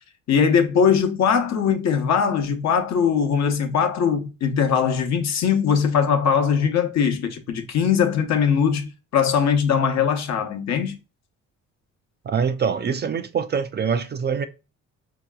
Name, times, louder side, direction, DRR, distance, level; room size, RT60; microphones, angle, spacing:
voice 1, 0.3-11.0, left 7 dB, 60° left, 0.8 m, -21 dB
voice 2, 12.3-14.5, right 6 dB, 35° right, 0.4 m, -24 dB
4.6 x 2.8 x 2.2 m
cardioid pair, 90°, 30 cm